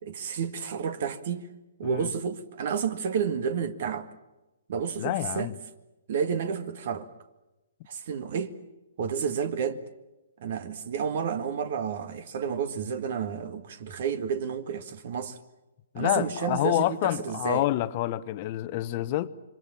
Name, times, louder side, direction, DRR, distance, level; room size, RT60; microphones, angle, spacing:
voice 1, 0.0-1.5 1.8-4.1 4.7-5.5 6.1-7.1 7.9-8.6 9.0-9.8 10.4-15.4 16.0-17.7, right 7 dB, 50° right, 1.8 m, -30 dB
voice 2, 5.0-5.5 15.9-19.3, left 15 dB, 35° left, 1.0 m, -28 dB
27.0 x 24.0 x 7.1 m
figure-of-eight pair, 125°, 0 cm